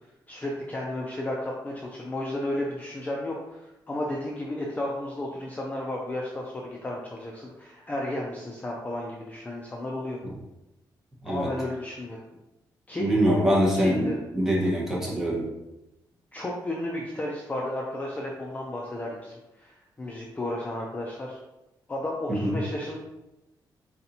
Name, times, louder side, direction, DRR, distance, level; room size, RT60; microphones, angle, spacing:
voice 1, 0.3-10.2 11.2-12.2 12.9-13.1 13.7-14.2 16.3-21.4 21.9-23.0, left 1 dB, 20° left, -2 dB, 0.5 m, -33 dB
voice 2, 13.0-15.4 22.4-22.6, equal, 5° right, -5 dB, 1.3 m, -24 dB
4.3 x 4.1 x 2.8 m, 0.96 s
wide cardioid pair, 150°, 8 cm